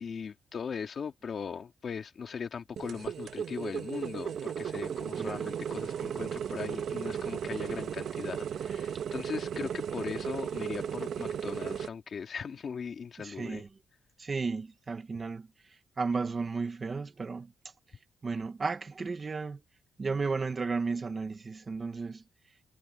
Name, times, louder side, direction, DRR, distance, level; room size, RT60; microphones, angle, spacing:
voice 1, 0.0-13.6, left 6 dB, 35° left, 2.4 m, -39 dB
sound 1, 2.8-11.9, right 8 dB, 55° right, 1.2 m, -35 dB
voice 2, 13.2-13.7 14.2-17.5 18.2-19.6 20.0-22.2, right 4 dB, 25° right, 1.3 m, -34 dB
cardioid pair, 170°, 0 cm